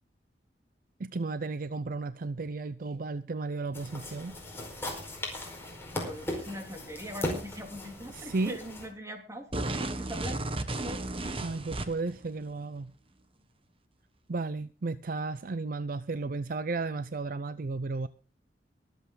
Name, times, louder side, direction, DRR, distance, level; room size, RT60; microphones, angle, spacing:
voice 1, 1.0-4.4 8.1-8.6 11.4-12.9 14.3-18.1, right 3 dB, 55° right, 0.5 m, -34 dB
sound 1, 3.7-8.9, left 1 dB, 15° left, 4.8 m, -38 dB
voice 2, 5.9-11.5, equal, 15° right, 3.2 m, -42 dB
sound 2, 9.5-12.2, right 2 dB, 30° right, 1.4 m, -33 dB
23.0 x 8.2 x 3.9 m
head